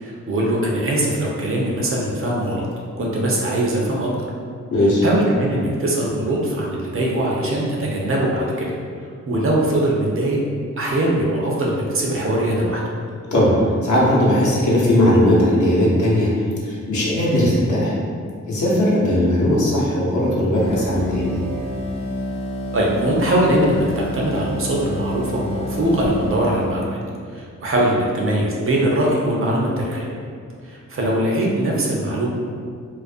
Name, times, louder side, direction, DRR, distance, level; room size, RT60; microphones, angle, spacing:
voice 1, 0.0-2.7 3.0-4.1 5.0-8.7 9.0-10.4 10.8-12.8 22.7-27.0 27.3-30.1 30.6-32.3, right 1 dB, 45° right, -3 dB, 0.5 m, -21 dB
voice 2, 4.7-5.0 13.3-16.3 16.6-17.9 18.5-21.4, left 1 dB, 70° left, -6 dB, 0.7 m, -18 dB
sound 1, 20.5-26.8, left 1 dB, 20° left, 0.5 m, -29 dB
2.4 x 2.1 x 2.5 m, 2.1 s
wide cardioid pair, 110°, 31 cm